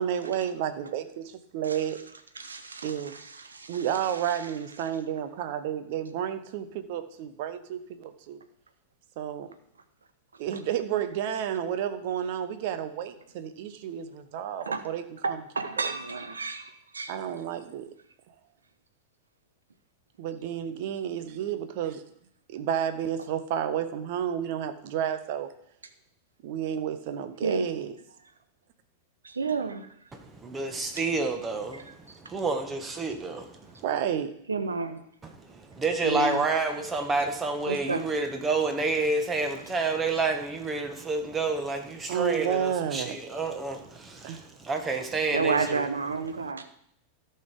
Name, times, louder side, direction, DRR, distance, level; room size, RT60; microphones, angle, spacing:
voice 1, 0.0-2.0 2.8-3.2 3.7-8.4 9.2-9.5 10.4-15.0 15.3-15.4 15.8-15.9 17.1-17.9 20.2-22.0 22.5-25.5 26.4-27.9 33.8-34.3 42.1-43.2 44.2-44.5, right 9 dB, 50° right, 10 dB, 1.0 m, -31 dB
voice 2, 2.3-4.5 4.8-4.9 14.6-14.8 15.2-17.2 27.4-27.7 29.2-29.9 31.7-32.2 34.5-35.0 36.0-36.5 37.7-38.1 44.8-44.9 45.3-46.7, right 4 dB, 75° right, 9 dB, 1.0 m, -31 dB
voice 3, 30.3-31.8 32.3-33.7 35.5-45.8, right 3 dB, 20° right, 5 dB, 1.6 m, -29 dB
13.5 x 5.8 x 5.0 m, 0.71 s
figure-of-eight pair, 90°, 0 cm